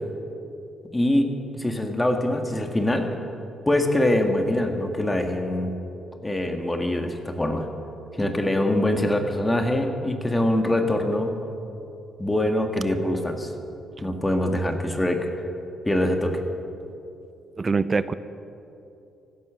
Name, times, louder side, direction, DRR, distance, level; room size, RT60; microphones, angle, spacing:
voice 1, 0.9-3.1 3.7-5.7 6.2-7.7 8.2-11.3 12.2-13.5 14.0-15.2 15.9-16.4, left 1 dB, 15° left, 4 dB, 1.7 m, -23 dB
voice 2, 17.6-18.1, right 4 dB, 30° right, 15 dB, 0.5 m, -23 dB
16.0 x 12.5 x 6.3 m, 2.8 s
cardioid pair, 90°, 0 cm